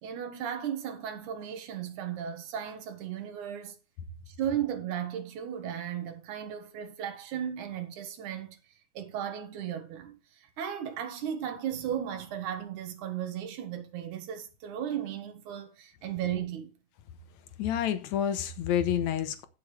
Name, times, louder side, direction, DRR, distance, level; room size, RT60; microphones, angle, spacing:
voice 1, 0.0-3.8 4.3-8.6 8.9-16.7, right 9 dB, 80° right, 2.9 m, -35 dB
voice 2, 17.6-19.5, left 9 dB, 70° left, 2.4 m, -28 dB
16.0 x 6.7 x 3.2 m
omnidirectional pair, 3.5 m